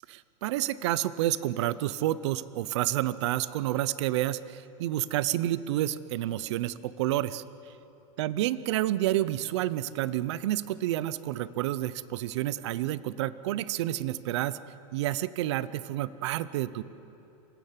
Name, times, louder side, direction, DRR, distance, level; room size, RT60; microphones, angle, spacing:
voice 1, 0.1-7.4 8.2-14.6 14.9-16.8, right 14 dB, 55° right, 17 dB, 0.7 m, -29 dB
26.5 x 15.0 x 8.3 m, 2.9 s
supercardioid pair, 170°, 17 cm